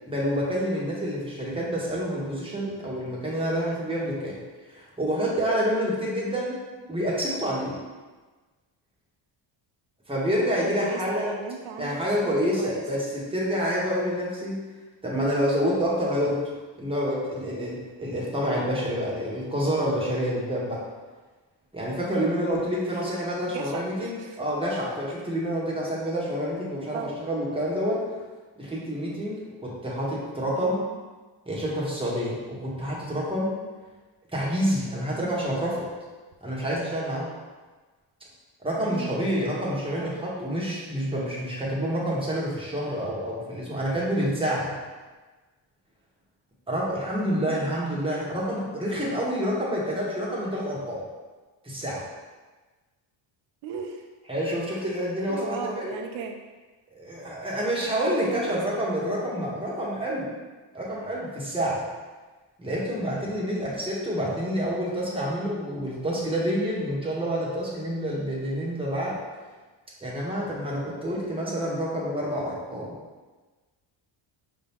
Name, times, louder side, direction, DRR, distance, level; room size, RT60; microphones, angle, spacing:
voice 1, 0.0-4.4 4.7-6.6 6.9-7.8 10.1-11.3 11.8-14.6 15.0-16.4 16.8-20.8 21.7-28.1 28.6-30.8 31.4-33.5 34.3-35.9 36.4-37.3 38.6-44.7 46.7-51.0 51.6-52.0 54.3-55.9 56.9-60.3 60.7-61.8 62.6-69.2 70.0-72.9, equal, 10° right, -6 dB, 1.2 m, -28 dB
voice 2, 10.5-12.0 12.2-12.8 22.3-22.5 23.5-24.5 26.9-27.2 30.5-31.0 35.1-35.4 38.8-39.3 39.9-40.2 47.4-47.7 53.6-54.0 55.2-56.4 58.3-58.8 63.6-63.8 65.1-65.2, right 5 dB, 75° right, 3 dB, 0.6 m, -37 dB
5.1 x 2.9 x 3.5 m, 1.3 s
cardioid pair, 110°, 48 cm